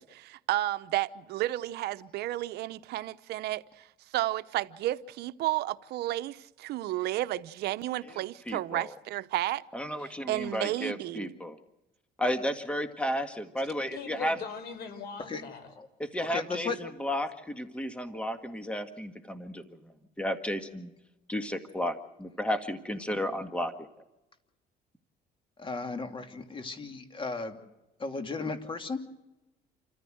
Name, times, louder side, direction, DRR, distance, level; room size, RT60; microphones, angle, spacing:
voice 1, 0.1-3.6 4.1-9.6 10.3-11.3, right 15 dB, 75° right, 0.8 m, -32 dB
voice 2, 8.5-8.9 9.7-11.6 12.2-14.4 16.0-19.8 20.2-20.9 21.3-23.9, equal, 5° left, 1.8 m, -33 dB
voice 3, 13.8-15.7, left 6 dB, 70° left, 4.6 m, -40 dB
voice 4, 16.2-16.8 25.6-27.6 28.0-29.0, left 4 dB, 30° left, 2.7 m, -35 dB
28.0 x 14.5 x 7.9 m
cardioid pair, 110°, 17 cm